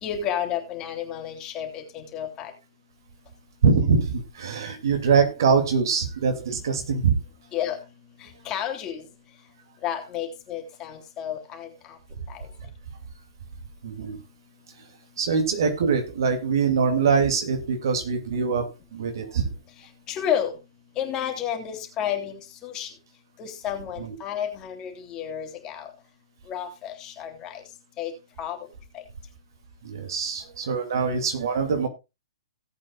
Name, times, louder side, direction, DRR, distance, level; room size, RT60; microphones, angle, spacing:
voice 1, 0.0-2.5 7.5-7.8 8.2-9.0 9.8-12.0 12.3-12.5 20.1-20.5 21.0-22.9 23.4-25.9 26.5-27.6 28.0-28.1 28.4-28.6, left 9 dB, 25° left, 3 dB, 3.1 m, -31 dB
voice 2, 3.6-7.1 13.8-14.2 15.2-18.7 18.9-19.5 24.0-24.1 29.8-31.9, right 5 dB, 60° right, 5 dB, 2.7 m, -23 dB
18.0 x 8.4 x 2.5 m, 0.25 s
figure-of-eight pair, 115°, 2 cm